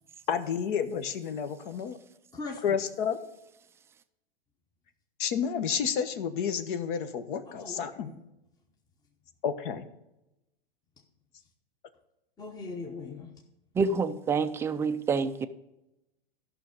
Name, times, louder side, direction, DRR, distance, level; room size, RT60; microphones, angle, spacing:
voice 1, 0.3-2.0 2.6-3.2 5.2-8.1 9.4-9.8, left 7 dB, 60° left, 1.1 m, -30 dB
voice 2, 2.3-2.8 7.5-8.2 11.0-11.1 12.4-13.4, left 3 dB, 15° left, 0.9 m, -41 dB
voice 3, 13.8-15.5, right 4 dB, 10° right, 0.3 m, -27 dB
13.0 x 6.0 x 5.2 m
hypercardioid pair, 125°, 29 cm